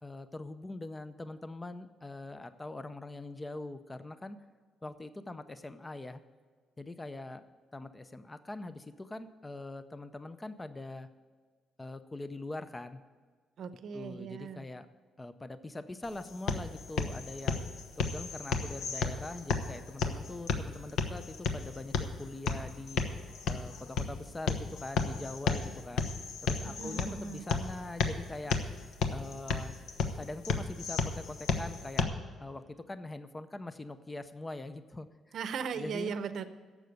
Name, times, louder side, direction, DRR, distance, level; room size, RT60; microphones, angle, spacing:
voice 1, 0.0-4.4 4.8-6.2 6.8-7.5 7.7-11.1 11.8-13.0 13.9-14.9 15.2-17.6 18.0-23.0 23.5-26.1 26.4-28.6 29.1-29.8 30.1-32.1 32.4-35.3 35.7-36.1, left 2 dB, 15° left, 11 dB, 0.5 m, -43 dB
voice 2, 13.6-14.6 26.6-27.4 35.3-36.4, right 6 dB, 55° right, 11 dB, 0.8 m, -38 dB
sound 1, 16.0-32.0, left 5 dB, 75° left, 1.1 m, -34 dB
12.0 x 7.6 x 8.0 m, 1.6 s
cardioid pair, 165°, 0 cm